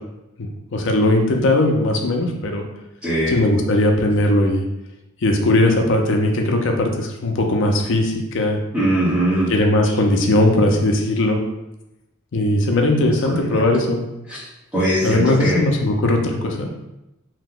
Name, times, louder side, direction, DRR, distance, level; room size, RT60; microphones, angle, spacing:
voice 1, 0.4-2.7 3.3-4.6 5.2-8.6 9.5-11.4 12.3-14.0 15.0-16.7, left 1 dB, 55° left, 2 dB, 0.5 m, -19 dB
voice 2, 3.0-3.4 8.7-9.5 13.0-13.6 14.3-14.5 14.7-15.6, right 1 dB, 5° right, -10 dB, 0.8 m, -21 dB
2.7 x 2.1 x 3.6 m, 0.91 s
head